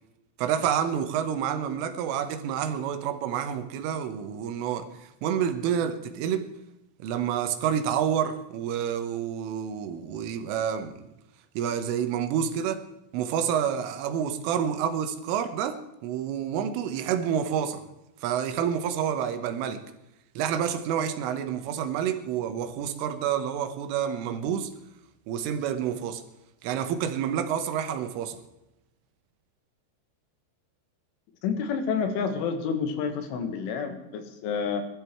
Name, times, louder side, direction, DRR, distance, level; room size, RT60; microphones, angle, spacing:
voice 1, 0.4-6.5 7.0-11.0 11.6-12.9 13.1-17.9 18.2-19.8 20.4-24.7 25.3-26.2 26.6-28.4, right 8 dB, 85° right, 9 dB, 3.8 m, -28 dB
voice 2, 31.4-34.8, left 6 dB, 75° left, 7 dB, 4.1 m, -29 dB
20.5 x 13.0 x 4.6 m, 0.91 s
omnidirectional pair, 5.7 m